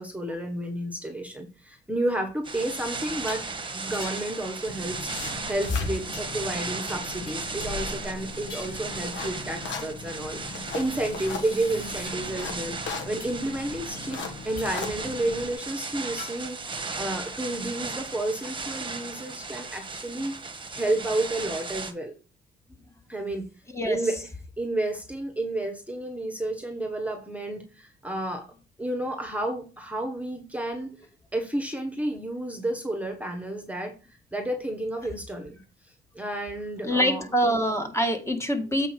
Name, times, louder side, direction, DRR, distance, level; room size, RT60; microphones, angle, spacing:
voice 1, 0.0-3.4 3.7-12.8 13.0-20.3 20.7-22.2 23.1-23.5 23.8-24.2 24.6-28.5 28.8-30.9 31.3-33.9 34.3-35.6 36.1-37.3, right 1 dB, 5° right, 5 dB, 1.4 m, -31 dB
sound 1, 2.4-21.9, right 4 dB, 25° right, 1.3 m, -36 dB
sound 2, 3.3-3.6 3.9-4.4 5.8-6.6 6.9-7.9 8.5-8.9 10.6-12.2 13.2-13.4 14.6-14.9 16.2-16.3, left 4 dB, 50° left, 4.3 m, -45 dB
sound 3, 4.7-15.5, left 4 dB, 70° left, 1.5 m, -38 dB
voice 2, 36.8-38.9, equal, 15° left, 5 dB, 1.7 m, -25 dB
8.1 x 4.8 x 4.5 m, 0.34 s
cardioid pair, 90°, 20 cm